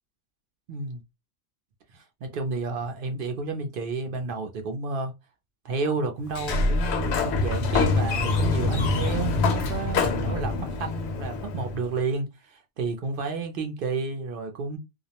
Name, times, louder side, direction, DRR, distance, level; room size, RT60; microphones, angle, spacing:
voice 1, 0.7-1.0 1.9-5.1 5.6-14.8, right 4 dB, 60° right, 0.6 m, -31 dB
Sliding door, 6.3-11.9, left 3 dB, 65° left, 0.8 m, -25 dB
2.3 x 2.0 x 2.7 m
omnidirectional pair, 1.3 m